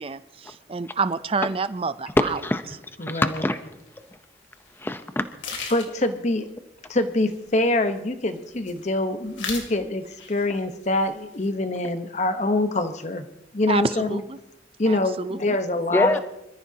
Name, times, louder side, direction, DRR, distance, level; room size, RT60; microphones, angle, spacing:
voice 1, 0.0-2.3 13.7-14.4 14.9-15.6, right 4 dB, 30° right, 13 dB, 0.5 m, -28 dB
voice 2, 2.2-2.6 3.0-3.6 4.8-5.3 15.9-16.2, left 1 dB, 10° left, 9 dB, 0.7 m, -23 dB
sound 1, 3.8-3.9 4.5-4.7 5.0-5.1 5.4-6.2 7.0-8.0 8.3-8.9 9.2-9.7 10.1-10.6 10.8-11.5, left 5 dB, 90° left, 2.7 m, -36 dB
voice 3, 5.7-6.5 6.9-13.3 13.5-14.2 14.8-16.2, left 2 dB, 40° left, 8 dB, 1.0 m, -25 dB
26.0 x 14.0 x 2.8 m, 0.90 s
head